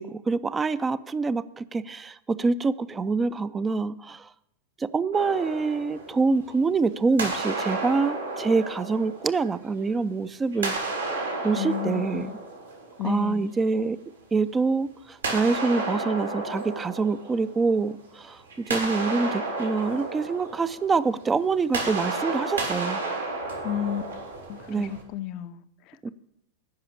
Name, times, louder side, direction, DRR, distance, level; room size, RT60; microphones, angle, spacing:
voice 1, 0.0-4.3 4.8-10.9 11.4-12.3 13.0-14.0 14.3-18.4 18.7-23.0 24.7-24.9 26.0-26.1, right 4 dB, 15° right, 0.4 m, -26 dB
sound 1, 5.1-6.8 7.2-10.0 10.5-13.4 15.2-18.0 18.3-25.0, right 2 dB, 75° right, 2.7 m, -32 dB
voice 2, 11.5-12.3 13.0-13.5 23.6-24.0 24.5-26.1, left 11 dB, 40° left, 0.5 m, -32 dB
10.5 x 5.7 x 8.7 m
figure-of-eight pair, 90°, 0 cm